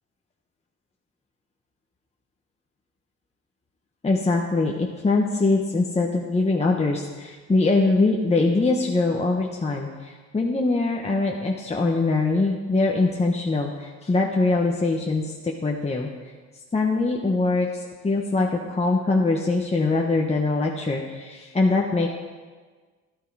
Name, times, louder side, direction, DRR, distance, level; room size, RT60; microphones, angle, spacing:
voice 1, 4.0-16.1 16.7-22.1, left 3 dB, 20° left, -1 dB, 1.2 m, -23 dB
12.0 x 11.0 x 4.8 m, 1.4 s
cardioid pair, 90°, 30 cm